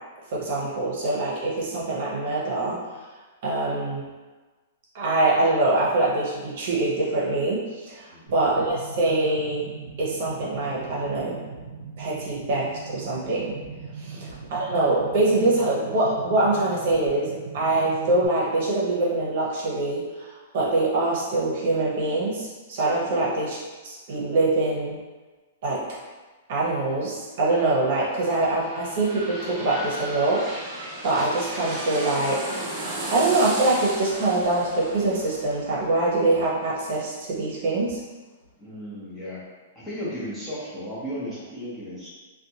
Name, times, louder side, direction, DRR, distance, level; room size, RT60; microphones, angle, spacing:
voice 1, 0.3-2.8 3.4-4.1 4.9-9.7 10.0-11.4 12.0-13.6 14.0-17.3 17.5-25.0 25.6-25.8 26.5-30.4 31.0-32.4 32.9-38.0, right 2 dB, 55° right, -5 dB, 0.8 m, -24 dB
sound 1, 8.3-18.3, right 5 dB, 85° right, 0.5 m, -40 dB
sound 2, 27.8-37.5 37.9-38.0, right 1 dB, 30° right, 0.5 m, -35 dB
voice 2, 38.6-39.4 39.7-42.1, equal, 5° left, -11 dB, 0.9 m, -35 dB
2.5 x 2.2 x 2.8 m, 1.3 s
hypercardioid pair, 150°, 0 cm